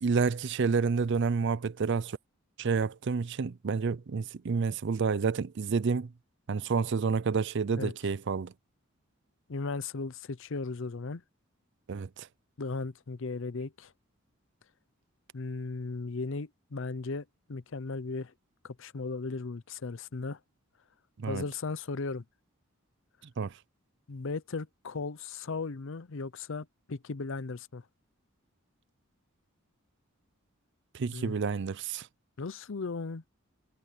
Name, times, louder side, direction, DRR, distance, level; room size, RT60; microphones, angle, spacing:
voice 1, 0.0-2.2 2.6-6.1 6.5-8.5 11.9-12.3 21.2-21.4 23.4-23.5 30.9-32.1, right 5 dB, 55° right, 0.5 m, -29 dB
voice 2, 9.5-11.2 12.6-13.9 15.3-18.3 18.6-20.4 21.3-22.2 24.1-27.8 31.1-31.3 32.4-33.2, left 3 dB, 60° left, 0.6 m, -36 dB
head